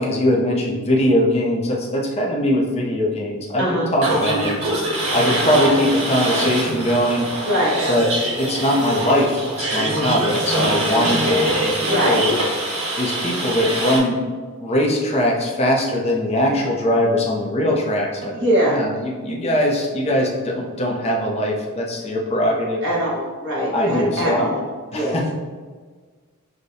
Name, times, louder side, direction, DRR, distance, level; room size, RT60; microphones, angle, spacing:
voice 1, 0.0-4.6 5.1-7.3 7.9-8.1 8.3-12.3 12.7-14.2 14.6-18.3 18.7-22.8 23.7-24.5 24.9-25.3, left 1 dB, 30° left, -1 dB, 0.6 m, -21 dB
voice 2, 3.6-3.9 7.4-7.8 11.9-12.2 18.3-18.8 22.8-24.6 24.9-25.2, equal, 55° right, -6 dB, 1.3 m, -22 dB
sound 1, 4.0-14.0, right 1 dB, 75° right, 1.3 m, -23 dB
6.3 x 2.2 x 2.6 m, 1.5 s
head